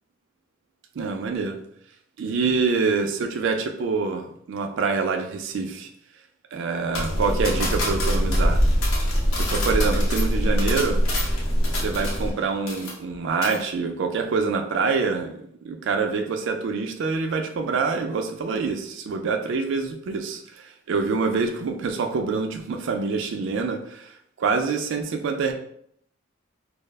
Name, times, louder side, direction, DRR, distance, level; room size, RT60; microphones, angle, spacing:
voice 1, 1.0-1.6 2.2-5.9 6.5-8.6 9.3-11.0 11.7-15.3 15.6-24.1 24.4-25.5, right 4 dB, 60° right, 5 dB, 0.3 m, -26 dB
sound 1, 6.9-12.4 12.7-13.1 13.4-13.6, left 2 dB, 80° left, 0.7 m, -31 dB
sound 2, 6.9-12.3, equal, 25° left, 0.4 m, -23 dB
2.3 x 2.0 x 3.3 m, 0.71 s
head